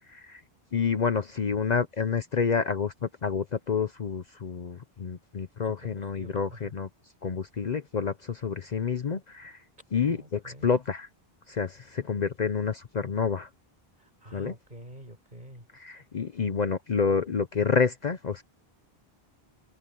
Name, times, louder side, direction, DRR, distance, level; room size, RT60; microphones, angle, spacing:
voice 1, 0.1-0.4 0.7-6.9 7.2-9.6 9.9-11.1 11.5-13.5 14.3-14.5 15.7-18.4, left 5 dB, 50° left, 0.8 m, -28 dB
voice 2, 5.7-6.7 10.0-10.7 14.2-15.6, equal, 50° right, 8.1 m, -47 dB
open air
omnidirectional pair, 1.0 m